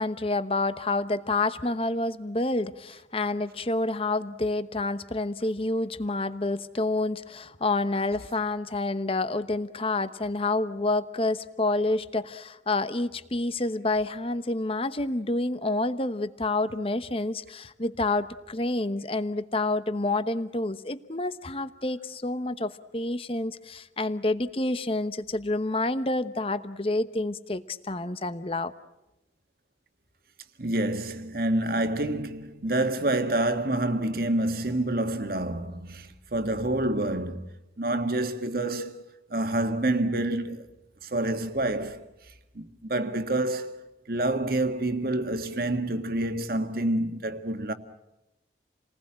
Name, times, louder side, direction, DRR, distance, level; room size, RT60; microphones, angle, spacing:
voice 1, 0.0-28.7, left 2 dB, 30° left, 1.0 m, -28 dB
voice 2, 30.6-39.0 39.3-40.7 41.0-42.0 42.5-47.7, right 1 dB, 55° right, 1.7 m, -28 dB
29.0 x 20.0 x 8.8 m
head